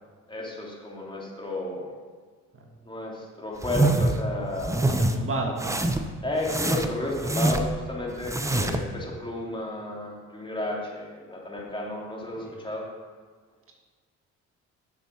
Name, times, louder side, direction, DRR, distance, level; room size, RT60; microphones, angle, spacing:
voice 1, 0.3-1.9 2.8-5.0 6.2-12.8, left 2 dB, 15° left, -3 dB, 2.8 m, -32 dB
sound 1, 3.6-4.2 4.6-5.2 5.6-6.1 6.4-7.8 8.2-8.9, right 2 dB, 10° right, 0.8 m, -25 dB
voice 2, 4.7-5.9 8.1-8.2 12.4-12.6, right 2 dB, 45° right, 1 dB, 1.6 m, -34 dB
8.9 x 7.2 x 6.0 m, 1.5 s
cardioid pair, 90°, 30 cm